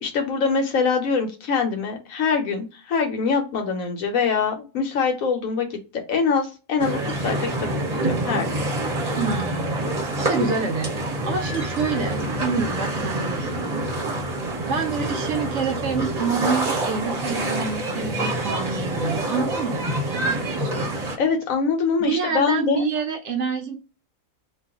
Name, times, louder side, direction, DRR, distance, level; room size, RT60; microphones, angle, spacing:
voice 1, 0.0-5.8 6.1-8.6 21.2-22.8, left 5 dB, 80° left, 4 dB, 1.2 m, -24 dB
sound 1, 6.8-21.2, right 1 dB, 35° right, 0.8 m, -26 dB
voice 2, 9.1-10.9 11.2-14.3 14.6-21.0 22.0-23.8, right 5 dB, 65° right, 5 dB, 0.8 m, -28 dB
2.6 x 2.4 x 3.5 m, 0.31 s
omnidirectional pair, 1.4 m